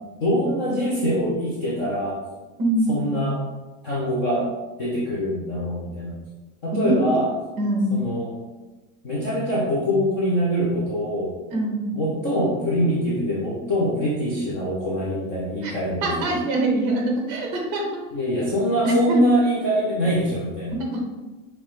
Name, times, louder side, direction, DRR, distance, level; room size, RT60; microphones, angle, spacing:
voice 1, 0.2-2.2 2.9-3.4 3.8-4.5 4.8-6.2 6.6-7.3 7.9-8.4 9.0-11.3 11.9-16.3 18.1-20.8, equal, 20° left, -7 dB, 0.4 m, -23 dB
voice 2, 2.6-3.0 6.7-7.2 7.6-8.0 11.5-11.9 15.6-15.7 16.0-18.0 18.8-19.2 20.7-21.0, right 1 dB, 35° right, 1 dB, 1.0 m, -24 dB
5.4 x 2.9 x 3.2 m, 1.2 s
supercardioid pair, 175°, 41 cm